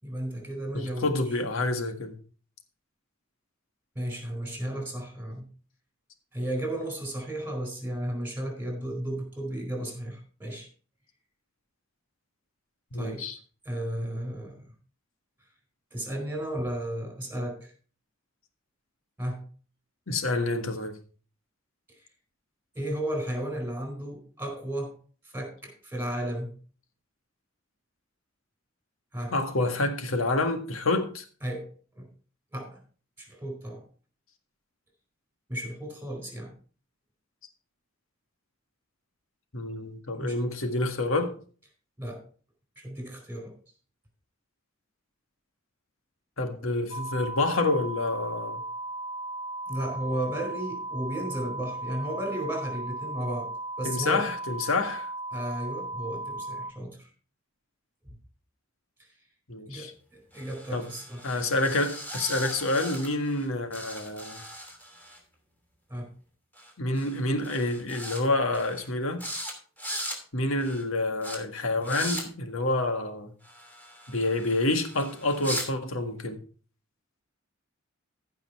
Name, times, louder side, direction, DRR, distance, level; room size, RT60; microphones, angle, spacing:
voice 1, 0.0-1.1 3.9-5.5 6.3-10.7 12.9-13.2 13.6-14.6 15.9-17.7 19.2-19.4 22.0-22.1 22.7-25.0 25.2-26.5 29.1-29.3 31.4-32.1 32.5-32.8 33.2-33.8 35.5-36.5 40.1-40.4 42.0-42.3 42.8-43.6 49.7-53.5 53.8-54.3 55.3-57.1 59.7-61.3 65.9-66.1, right 1 dB, 10° right, 4.3 m, -34 dB
voice 2, 0.7-2.1 12.9-13.4 20.1-20.9 29.3-31.2 39.5-41.4 46.4-48.6 53.8-55.1 59.5-59.9 60.7-60.9 61.2-64.4 66.8-69.2 70.3-73.3 74.1-76.4, left 2 dB, 90° left, 1.7 m, -28 dB
sound 1, 46.9-56.7, right 2 dB, 30° right, 0.6 m, -36 dB
sound 2, 60.3-63.5 63.7-65.2 66.6-66.7 67.0-67.2 67.4-68.2 68.5-68.9 69.2-69.5 69.8-70.2 70.6-70.8 71.2-71.4 71.8-72.2 73.4-75.7, equal, 10° left, 2.9 m, -39 dB
15.0 x 5.5 x 4.6 m
head